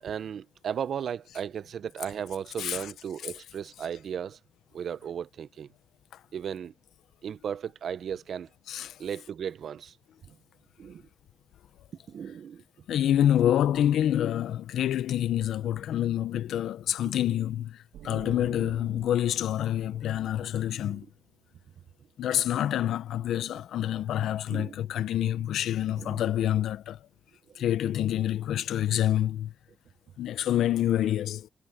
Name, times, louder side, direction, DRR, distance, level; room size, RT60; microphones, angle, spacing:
voice 1, 0.0-4.4 4.7-5.7 6.3-6.7 7.2-8.5 9.0-10.0 10.3-10.4 10.8-11.0 12.1-12.6 17.0-17.1 20.9-21.0 24.5-24.8 26.0-26.2 27.5-27.6, right 8 dB, 65° right, 0.9 m, -35 dB
voice 2, 8.7-9.0 12.9-21.0 22.2-27.1 27.5-29.5 30.2-31.5, left 11 dB, 80° left, 0.8 m, -27 dB
sound 1, 17.9-21.5, right 11 dB, 90° right, 1.7 m, -48 dB
cardioid pair, 75°, 0 cm